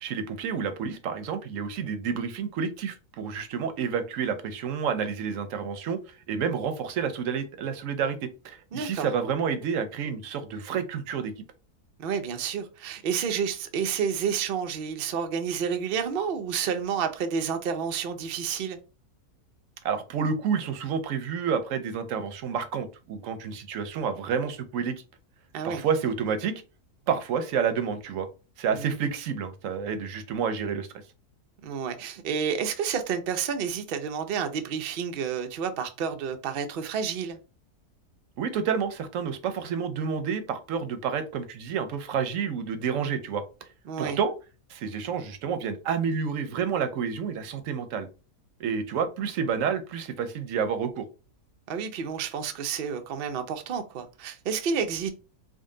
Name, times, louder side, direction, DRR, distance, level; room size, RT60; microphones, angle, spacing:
voice 1, 0.0-11.3 19.8-25.0 25.6-26.6 27.1-28.3 28.6-30.9 38.4-43.7 44.0-44.3 44.7-48.1 48.6-51.0, right 6 dB, 65° right, 0.8 m, -29 dB
voice 2, 8.7-9.1 12.0-18.8 25.5-25.8 28.7-29.0 31.6-37.4 43.9-44.2 51.7-55.1, right 7 dB, 85° right, 0.4 m, -30 dB
3.7 x 2.1 x 3.7 m
omnidirectional pair, 1.7 m